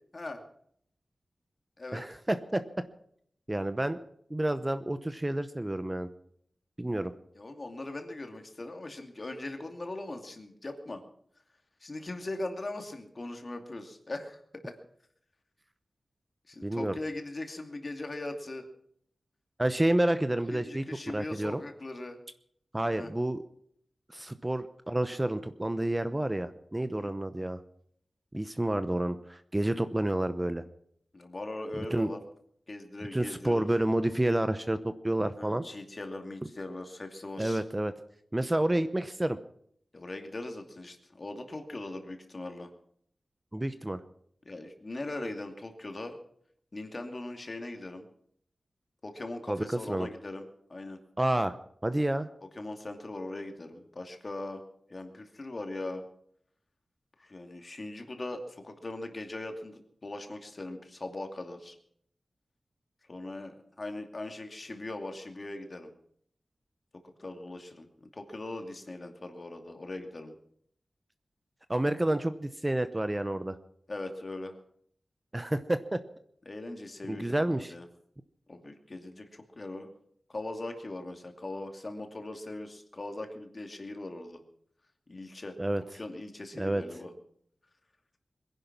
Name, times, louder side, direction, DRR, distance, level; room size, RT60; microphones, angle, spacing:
voice 1, 1.9-2.6 3.5-4.0 4.3-6.1 6.8-7.1 16.6-16.9 19.6-20.8 21.1-21.6 22.7-23.4 24.1-27.6 28.3-30.6 31.9-32.1 33.1-35.6 37.4-37.9 38.3-39.4 43.5-44.0 49.5-50.1 51.2-51.6 51.8-52.3 71.7-73.6 75.3-76.0 77.1-77.7 85.6-85.8 86.6-86.8, right 1 dB, 15° right, 11 dB, 0.8 m, -29 dB
voice 2, 7.3-11.0 11.8-14.7 16.5-18.6 20.5-22.2 22.9-23.1 27.0-27.1 31.1-32.2 32.7-33.7 35.4-37.6 39.9-42.7 44.5-46.2 46.7-48.0 49.0-50.4 50.7-51.0 52.5-54.6 54.9-56.0 57.2-61.8 63.1-65.9 67.2-70.4 73.9-74.5 76.5-77.9 78.5-79.9 80.3-84.4 85.1-85.6 85.9-87.1, left 2 dB, 40° left, 5 dB, 2.5 m, -40 dB
22.0 x 10.5 x 6.0 m, 0.67 s
wide cardioid pair, 110°, 0 cm